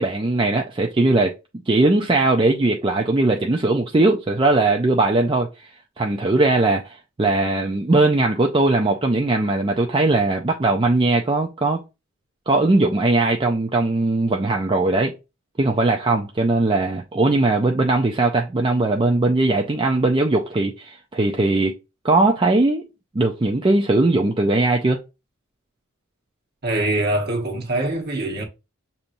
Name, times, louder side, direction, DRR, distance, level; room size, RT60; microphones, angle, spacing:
voice 1, 0.0-1.3 1.7-11.8 12.5-15.2 15.6-21.7 22.0-22.9 23.1-25.0, right 2 dB, 25° right, 0.4 m, -19 dB
voice 2, 26.6-28.4, right 1 dB, 50° right, 1.2 m, -23 dB
6.8 x 2.9 x 2.6 m
head